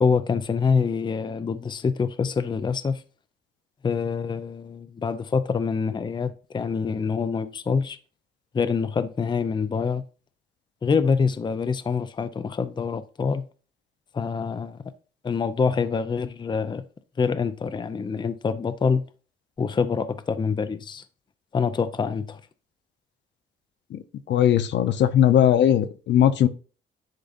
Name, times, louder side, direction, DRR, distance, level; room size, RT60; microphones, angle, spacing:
voice 1, 0.0-3.0 3.8-8.0 8.5-10.0 10.8-13.4 14.1-14.8 15.2-16.8 17.2-19.0 19.6-21.0 21.5-22.4, left 5 dB, 25° left, 0.5 m, -25 dB
voice 2, 24.3-26.5, left 10 dB, 65° left, 0.6 m, -19 dB
10.0 x 3.8 x 2.5 m
cardioid pair, 90°, 20 cm